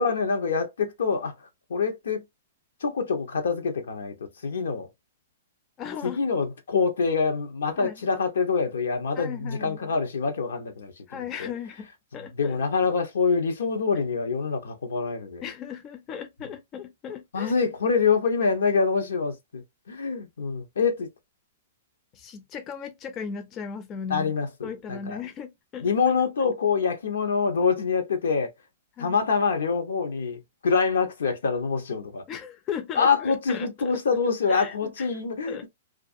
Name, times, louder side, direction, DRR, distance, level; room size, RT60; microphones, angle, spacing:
voice 1, 0.0-2.2 2.8-4.9 6.0-11.5 12.1-15.4 17.3-21.1 24.1-25.2 25.8-28.5 29.0-32.2 33.0-35.7, left 5 dB, 85° left, 0.8 m, -26 dB
voice 2, 5.8-6.2 7.8-8.0 9.2-9.9 11.1-12.6 15.4-17.5 22.1-24.3 24.6-25.9 29.0-29.2 32.3-33.7 34.5-35.1 35.5-35.7, left 7 dB, 25° left, 0.4 m, -37 dB
2.4 x 2.3 x 2.5 m
hypercardioid pair, 140°, 0 cm